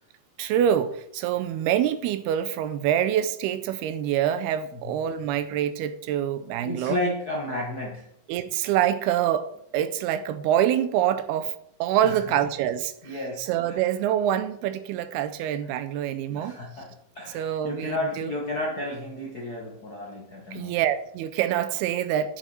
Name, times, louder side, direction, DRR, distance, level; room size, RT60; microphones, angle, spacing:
voice 1, 0.4-7.0 8.3-9.5 9.7-11.5 11.8-12.9 13.4-16.6 17.3-18.3 20.5-22.4, right 10 dB, 85° right, 2.7 m, -25 dB
voice 2, 6.6-8.1 12.0-12.2 13.0-13.9 16.3-20.8, left 1 dB, 75° left, 0.8 m, -32 dB
9.1 x 7.1 x 4.4 m
omnidirectional pair, 4.5 m